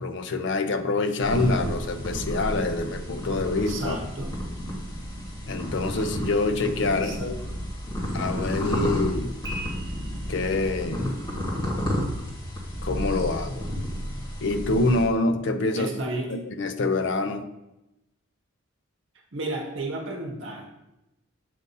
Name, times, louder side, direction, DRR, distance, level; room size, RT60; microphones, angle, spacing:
voice 1, 0.0-4.0 5.5-7.4 8.1-9.3 10.3-11.2 12.8-13.7 14.4-15.9 16.3-17.4, left 3 dB, 55° left, 9 dB, 0.5 m, -26 dB
sound 1, 1.2-15.0, equal, 20° left, 1.3 m, -31 dB
voice 2, 3.6-4.4 6.9-7.6 15.7-16.4 19.3-20.7, right 2 dB, 60° right, 0 dB, 0.9 m, -33 dB
sound 2, 5.9-7.1 9.4-10.9, equal, 15° right, 0.8 m, -42 dB
7.6 x 2.7 x 5.3 m, 0.93 s
head